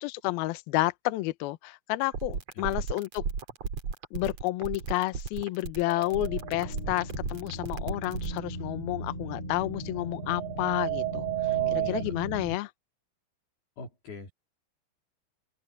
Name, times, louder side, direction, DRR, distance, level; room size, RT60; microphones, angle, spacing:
voice 1, 0.0-3.2 4.1-11.3 11.7-12.7, left 18 dB, 85° left, 2.1 m, -30 dB
sound 1, 2.0-8.4, right 5 dB, 40° right, 2.9 m, -34 dB
sound 2, 5.9-6.6 9.9-12.0, right 17 dB, 85° right, 3.8 m, -32 dB
sound 3, 6.1-12.6, equal, 30° left, 7.9 m, -38 dB
voice 2, 11.5-12.1 13.8-14.3, left 2 dB, 55° left, 5.6 m, -42 dB
open air
omnidirectional pair, 5.6 m